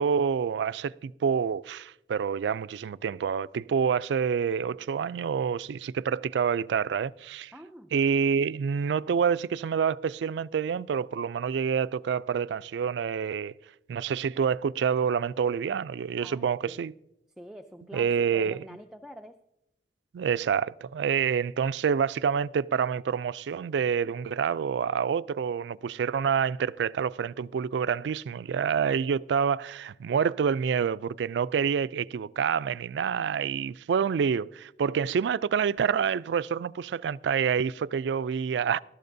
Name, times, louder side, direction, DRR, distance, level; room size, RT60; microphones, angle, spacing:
voice 1, 0.0-7.5 7.9-13.5 13.9-16.9 17.9-18.6 20.1-38.8, right 7 dB, 80° right, 0.3 m, -27 dB
voice 2, 7.5-7.9 16.2-16.8 17.4-19.4, equal, 5° right, 0.4 m, -46 dB
19.0 x 12.5 x 2.6 m
head